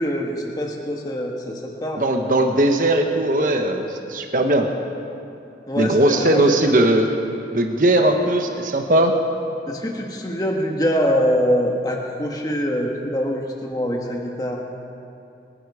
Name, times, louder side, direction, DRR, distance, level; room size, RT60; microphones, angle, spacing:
voice 1, 0.0-2.0 5.7-6.4 9.7-14.6, equal, 20° left, 0 dB, 1.4 m, -24 dB
voice 2, 2.0-4.7 5.8-7.1 7.5-9.1, right 1 dB, 50° right, 4 dB, 1.2 m, -18 dB
26.0 x 11.5 x 4.9 m, 2.8 s
head